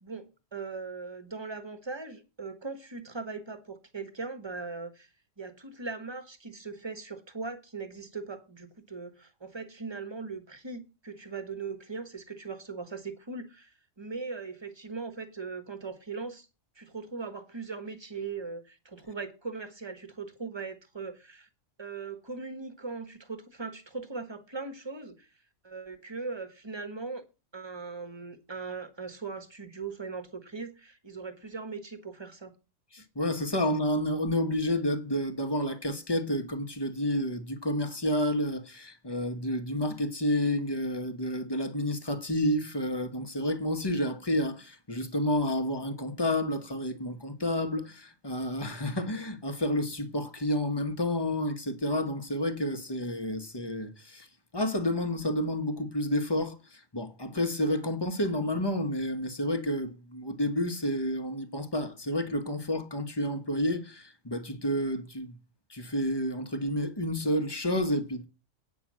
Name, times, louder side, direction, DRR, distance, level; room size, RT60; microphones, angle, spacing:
voice 1, 0.0-5.1 5.4-16.5 16.8-21.5 21.8-25.3 25.6-27.2 27.5-32.5, right 4 dB, 20° right, 1.3 m, -39 dB
voice 2, 32.9-54.3 54.5-65.3 65.7-68.3, left 1 dB, 20° left, 1.2 m, -30 dB
9.2 x 6.1 x 7.4 m
omnidirectional pair, 1.3 m